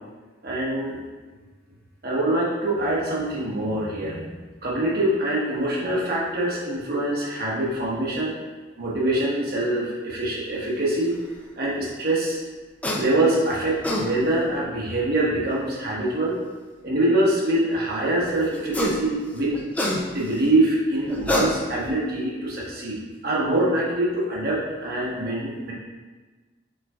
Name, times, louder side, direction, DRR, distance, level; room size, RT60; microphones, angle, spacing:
voice 1, 0.4-1.0 2.0-4.3 4.6-8.3 8.8-11.1 11.6-12.4 13.0-16.3 16.8-19.6 20.1-25.7, right 1 dB, 50° right, -5 dB, 1.1 m, -24 dB
sound 1, 12.8-13.0 13.6-14.1 15.5-15.6 18.5-19.0 19.4-20.4 21.1-21.9, left 1 dB, 10° left, 0.4 m, -26 dB
5.6 x 3.8 x 2.4 m, 1.3 s
head